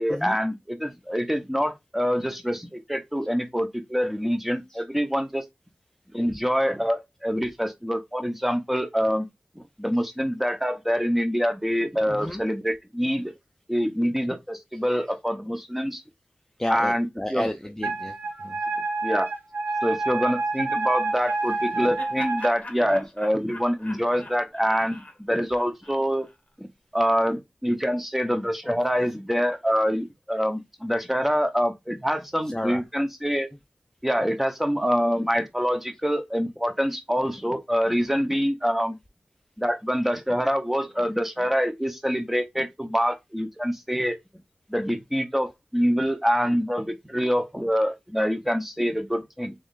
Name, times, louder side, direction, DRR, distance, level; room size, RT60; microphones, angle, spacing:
voice 1, 0.0-5.4 6.1-9.3 9.6-13.3 13.7-16.0 16.7-17.1 17.3-17.5 19.0-19.3 19.8-26.3 26.6-26.7 26.9-33.5 34.0-39.0 39.6-44.2 44.7-49.5, equal, 5° right, 0.9 m, -25 dB
voice 2, 12.1-12.4 16.6-18.6 32.4-32.8, left 1 dB, 15° left, 0.5 m, -31 dB
Wind instrument woodwind instrument, 17.8-22.5, right 3 dB, 80° right, 0.8 m, -28 dB
Laughter, 21.2-26.3, left 2 dB, 40° left, 1.2 m, -43 dB
3.6 x 3.2 x 2.5 m
cardioid pair, 40°, 3 cm